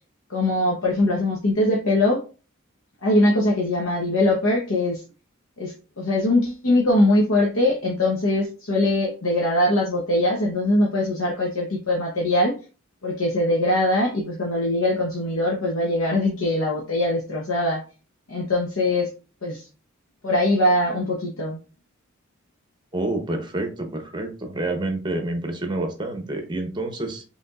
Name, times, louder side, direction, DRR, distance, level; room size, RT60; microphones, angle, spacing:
voice 1, 0.3-2.2 3.0-5.0 5.6-12.6 13.0-17.8 18.3-19.1 19.4-19.7 20.2-21.6, left 1 dB, 75° left, -2 dB, 0.9 m, -22 dB
voice 2, 22.9-27.2, right 2 dB, 20° right, 5 dB, 0.9 m, -28 dB
5.2 x 3.4 x 2.4 m, 0.34 s
head